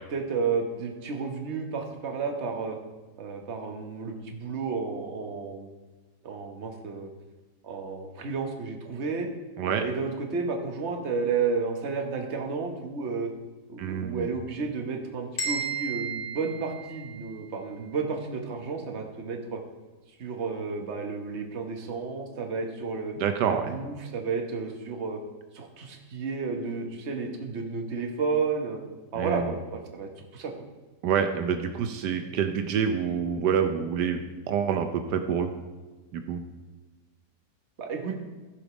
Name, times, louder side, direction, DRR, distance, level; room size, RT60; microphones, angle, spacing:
voice 1, 0.1-2.8 3.2-5.7 6.2-7.1 7.6-9.3 9.6-13.3 13.7-19.6 20.2-23.1 23.5-25.2 25.5-28.8 29.1-30.5 37.8-38.2, right 4 dB, 45° right, 3 dB, 1.3 m, -32 dB
voice 2, 13.8-14.3 23.2-23.7 29.1-29.5 31.0-34.2 34.5-35.5 36.1-36.4, right 7 dB, 80° right, 7 dB, 1.3 m, -27 dB
sound 1, 15.4-17.4, right 5 dB, 75° left, 2.7 m, -33 dB
15.0 x 5.2 x 5.0 m, 1.2 s
omnidirectional pair, 1.8 m